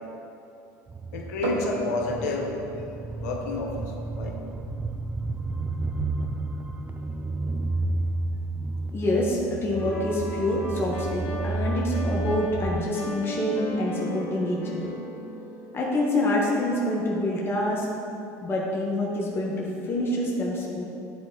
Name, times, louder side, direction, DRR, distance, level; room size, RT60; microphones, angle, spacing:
sound 1, 0.9-12.8, right 2 dB, 20° right, 0.5 m, -31 dB
voice 1, 1.1-2.7 3.2-3.8 4.1-4.4, left 3 dB, 85° left, 2 dB, 0.8 m, -30 dB
sound 2, 1.4-14.9, right 1 dB, 75° right, 1.0 m, -41 dB
voice 2, 8.9-14.9 15.7-17.9 18.4-20.8, left 1 dB, 25° left, -4 dB, 1.3 m, -26 dB
sound 3, 9.7-16.5, equal, 70° left, 1.5 m, -37 dB
10.0 x 3.8 x 3.8 m, 2.8 s
supercardioid pair, 90°, 9 cm